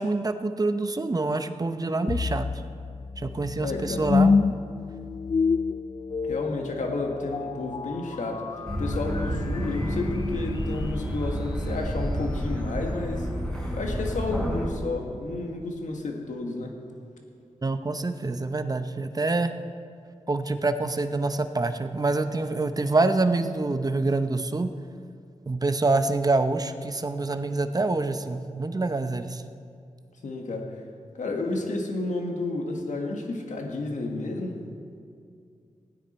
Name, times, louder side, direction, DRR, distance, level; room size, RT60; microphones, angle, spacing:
voice 1, 0.0-2.5 3.2-4.3 17.6-19.5 20.3-24.7 25.5-29.4, right 3 dB, 30° right, 9 dB, 0.7 m, -26 dB
sound 1, 2.1-11.2, left 4 dB, 35° left, 0.3 m, -28 dB
voice 2, 3.6-4.0 6.3-8.4 8.8-13.3 13.7-16.8 30.2-30.7 31.1-34.6, left 2 dB, 75° left, 2 dB, 1.6 m, -31 dB
sound 2, 8.7-14.7, equal, 5° left, 3.7 m, -30 dB
15.5 x 9.5 x 4.4 m, 2.3 s
cardioid pair, 60°, 13 cm